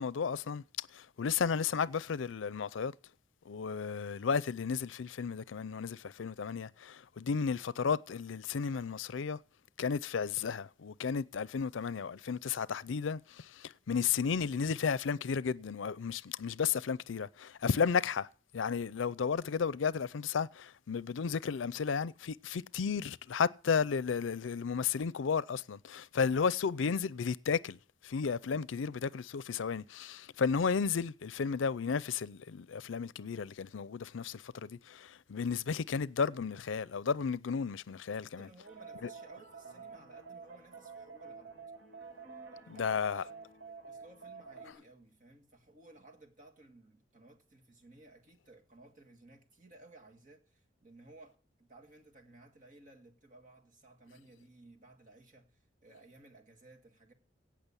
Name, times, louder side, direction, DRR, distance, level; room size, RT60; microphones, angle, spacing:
voice 1, 0.0-2.9 3.5-9.4 9.8-18.3 18.5-27.8 28.0-38.5 39.0-39.1 42.7-43.2, left 6 dB, 85° left, 0.5 m, -33 dB
voice 2, 38.4-41.6 42.5-43.3 43.8-57.1, right 2 dB, 40° right, 1.8 m, -58 dB
sound 1, 38.6-44.7, right 5 dB, 75° right, 3.1 m, -49 dB
17.0 x 6.1 x 7.0 m
head